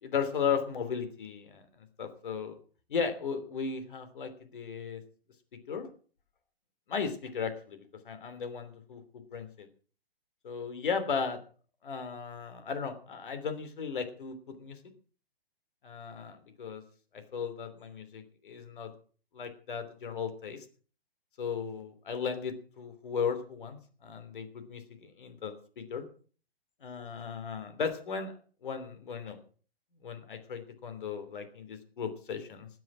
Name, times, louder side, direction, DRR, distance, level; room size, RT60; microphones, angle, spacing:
voice 1, 0.0-1.6 2.0-2.5 2.9-5.0 5.7-5.9 6.9-9.7 10.4-11.4 11.8-14.8 15.8-16.8 17.1-18.9 19.3-20.6 21.4-26.0 26.8-28.3 28.6-29.4 30.0-32.7, left 6 dB, 55° left, 9 dB, 3.2 m, -36 dB
20.0 x 7.8 x 6.1 m, 0.42 s
figure-of-eight pair, 120°, 30 cm